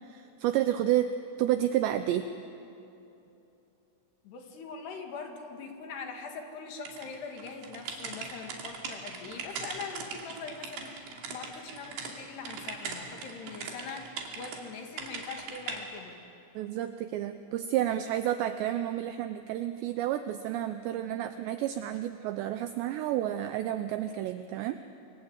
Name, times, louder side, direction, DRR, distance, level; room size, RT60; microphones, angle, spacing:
voice 1, 0.1-1.1 1.4-2.3 16.6-24.8, right 12 dB, 80° right, 9 dB, 2.5 m, -30 dB
voice 2, 4.2-16.2, left 5 dB, 60° left, 4 dB, 3.8 m, -42 dB
sound 1, 6.9-12.1 12.5-14.6 15.0-15.8, right 5 dB, 65° right, 4.7 m, -40 dB
27.5 x 26.5 x 8.1 m, 2.9 s
omnidirectional pair, 5.9 m